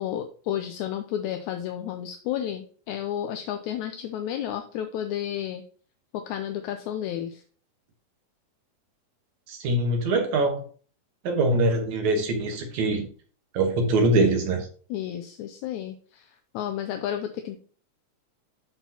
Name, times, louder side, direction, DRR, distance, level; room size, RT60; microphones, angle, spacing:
voice 1, 0.0-5.6 6.1-7.4 14.9-16.3 16.5-17.6, left 10 dB, 80° left, 6 dB, 1.9 m, -32 dB
voice 2, 9.5-10.6 11.2-13.0 13.5-14.7, right 2 dB, 70° right, 4 dB, 2.5 m, -23 dB
12.0 x 4.4 x 2.8 m, 0.42 s
omnidirectional pair, 3.7 m